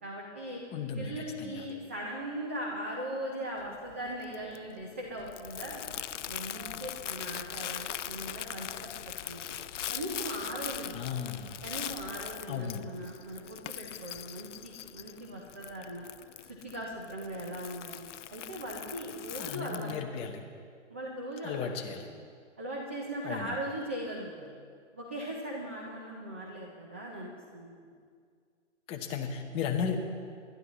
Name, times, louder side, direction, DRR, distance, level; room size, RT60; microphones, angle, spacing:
voice 1, 0.0-0.6 1.0-5.8 6.3-8.7 9.3-9.6 9.9-11.0 11.6-16.1 16.4-20.2 20.9-22.1 22.6-24.5 24.9-27.9, right 1 dB, 10° right, -3 dB, 0.3 m, -39 dB
voice 2, 0.7-1.6 10.9-11.5 12.5-12.9 19.4-20.4 21.4-22.1 23.2-23.6 28.9-30.0, left 7 dB, 15° left, 4 dB, 0.8 m, -35 dB
Crumpling crinkling, 3.6-20.0, left 11 dB, 70° left, 0.5 m, -41 dB
sound 1, 5.4-12.6, left 5 dB, 50° left, 1.7 m, -51 dB
21.0 x 11.5 x 3.0 m, 2.1 s
hypercardioid pair, 140°, 38 cm